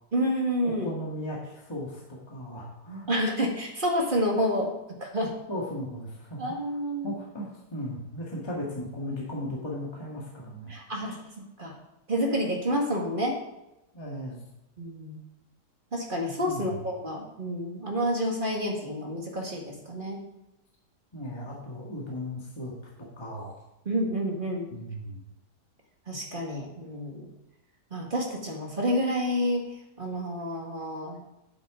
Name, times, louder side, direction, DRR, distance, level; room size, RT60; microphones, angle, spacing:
voice 1, 0.1-0.9 3.1-4.7 5.0-5.3 6.4-7.1 10.7-11.7 12.1-13.4 14.8-15.2 15.9-20.2 23.9-24.6 26.1-27.3 27.9-29.6 30.0-31.2, equal, 30° right, -1 dB, 2.0 m, -29 dB
voice 2, 0.6-3.1 5.5-6.6 7.0-10.7 13.9-14.4 16.4-16.8 21.1-22.7 23.2-23.5 24.7-25.2, equal, 15° left, -3 dB, 1.7 m, -36 dB
9.5 x 8.8 x 3.8 m, 0.90 s
omnidirectional pair, 1.8 m